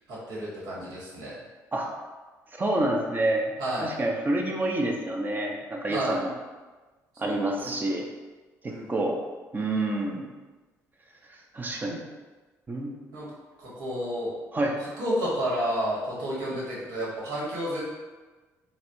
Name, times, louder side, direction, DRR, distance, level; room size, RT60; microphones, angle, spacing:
voice 1, 0.1-1.3 3.6-3.9 5.9-6.2 7.2-7.4 8.7-8.9 13.1-13.3 13.6-14.3 15.0-17.9, equal, 75° right, -6 dB, 1.3 m, -30 dB
voice 2, 2.5-3.5 3.8-6.3 7.2-8.0 8.6-9.2 9.5-10.3 11.5-12.0 12.7-12.9 14.5-14.7, right 1 dB, 30° right, 1 dB, 0.6 m, -28 dB
4.1 x 2.1 x 2.6 m, 1.3 s
supercardioid pair, 65°, 7 cm